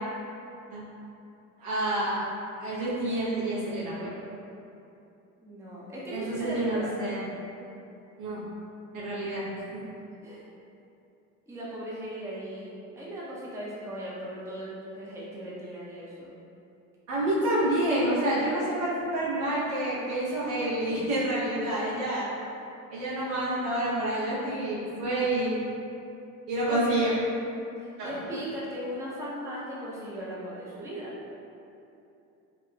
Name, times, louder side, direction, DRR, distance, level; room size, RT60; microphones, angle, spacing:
voice 1, 1.6-2.2 2.6-4.1 6.1-7.2 8.2-8.4 8.9-9.5 9.7-9.8 17.1-22.3 22.9-25.7 26.5-27.1 28.0-28.1, right 1 dB, 80° right, -9 dB, 1.1 m, -28 dB
voice 2, 5.4-6.9 10.2-10.5 11.5-16.3 26.7-26.9 27.8-31.1, equal, 5° right, -7 dB, 0.6 m, -38 dB
3.4 x 2.3 x 2.2 m, 2.7 s
hypercardioid pair, 65°, 44 cm